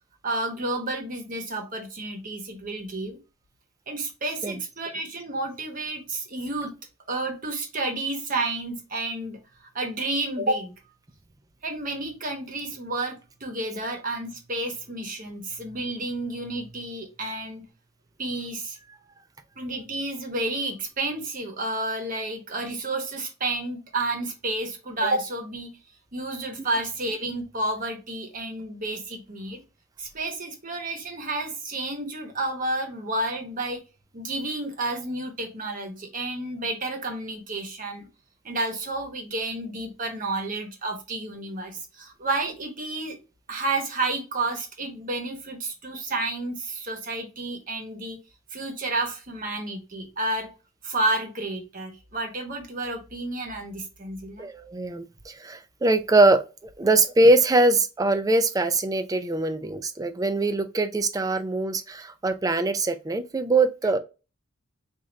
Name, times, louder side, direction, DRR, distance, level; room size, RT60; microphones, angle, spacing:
voice 1, 0.2-3.2 3.9-6.7 7.1-10.7 11.6-17.6 18.2-18.8 19.6-25.7 26.1-29.6 30.0-33.8 34.1-38.1 38.4-43.2 43.5-48.2 48.5-50.5 50.8-54.5, right 2 dB, 40° right, 1.0 m, -31 dB
voice 2, 54.4-56.4 56.8-64.0, right 2 dB, 15° right, 0.4 m, -22 dB
3.9 x 2.6 x 3.2 m
head